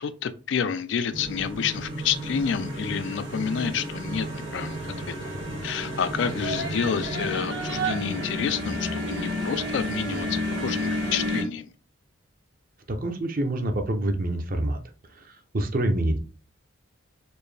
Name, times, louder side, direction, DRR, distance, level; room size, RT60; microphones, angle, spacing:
voice 1, 0.0-4.8 5.1-5.2 5.6-11.7, left 7 dB, 60° left, 0.3 m, -29 dB
sound 1, 1.1-11.4, left 1 dB, 60° right, 1.2 m, -32 dB
sound 2, 4.1-11.3, right 3 dB, 80° right, 0.9 m, -37 dB
voice 2, 12.9-14.8 15.1-16.2, right 1 dB, 45° right, 0.6 m, -26 dB
4.3 x 2.6 x 3.2 m
head